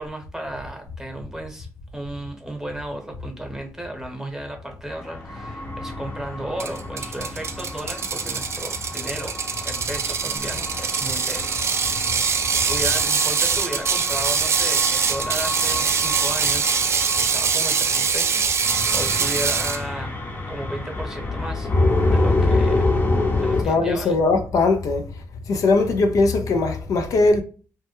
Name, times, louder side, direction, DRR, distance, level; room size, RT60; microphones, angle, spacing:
voice 1, 0.0-1.7 1.9-12.1 12.5-20.1 20.5-21.7 22.1-23.0 23.3-24.2, right 1 dB, 10° right, 0.9 m, -34 dB
sound 1, 4.9-23.6, left 2 dB, 35° left, 0.7 m, -27 dB
Ratchet pawl, 6.6-19.8, right 6 dB, 50° right, 0.3 m, -23 dB
voice 2, 23.6-25.1 25.5-27.4, left 3 dB, 70° left, 0.4 m, -20 dB
2.2 x 2.1 x 2.9 m
supercardioid pair, 60°, 6 cm